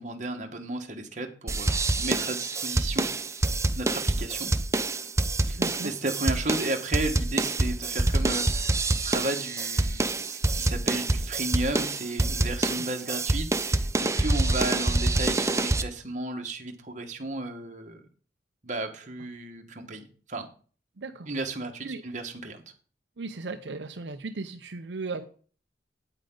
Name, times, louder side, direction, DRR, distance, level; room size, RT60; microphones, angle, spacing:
voice 1, 0.0-3.1 3.4-4.5 5.4-18.0 18.6-20.5 21.3-22.6, right 2 dB, 45° right, 4 dB, 1.5 m, -34 dB
sound 1, 1.5-15.8, right 2 dB, 15° right, 0.5 m, -26 dB
voice 2, 5.5-5.9 21.0-21.3 21.8-22.0 23.2-25.3, right 3 dB, 80° right, 7 dB, 0.7 m, -36 dB
9.2 x 8.7 x 3.8 m, 0.41 s
head